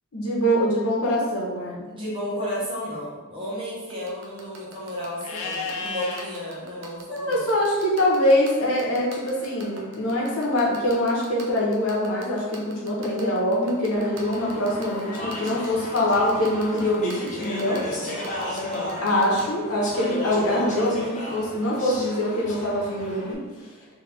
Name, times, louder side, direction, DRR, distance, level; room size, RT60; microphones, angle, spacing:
voice 1, 0.1-1.9 7.1-17.8 19.0-23.4, left 1 dB, 85° left, -4 dB, 1.0 m, -24 dB
voice 2, 1.9-7.5 18.3-19.0, left 1 dB, 25° right, -7 dB, 1.1 m, -33 dB
sound 1, 3.9-19.4, right 4 dB, 60° right, 0.6 m, -43 dB
Livestock farm animals working animals, 5.2-6.3 9.1-10.1, left 3 dB, 70° left, 0.5 m, -34 dB
Speech / Chatter, 14.0-23.3, left 1 dB, 35° left, 0.7 m, -34 dB
3.3 x 2.8 x 3.3 m, 1.3 s
head